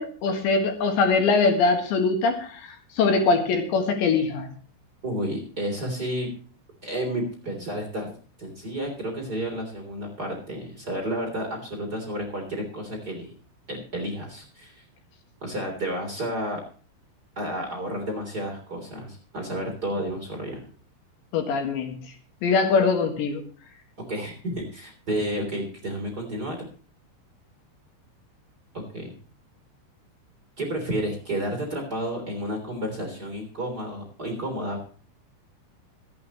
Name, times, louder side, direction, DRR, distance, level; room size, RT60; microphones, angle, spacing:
voice 1, 0.0-2.6 3.0-4.5 21.3-22.0 22.4-23.4, left 4 dB, 70° left, 5 dB, 3.9 m, -22 dB
voice 2, 5.0-6.3 6.8-13.3 13.7-14.8 15.4-16.6 17.3-20.6 24.1-26.6 28.7-29.1 30.6-34.9, right 1 dB, 20° right, 2 dB, 3.2 m, -31 dB
26.0 x 8.8 x 3.1 m, 0.41 s
omnidirectional pair, 5.7 m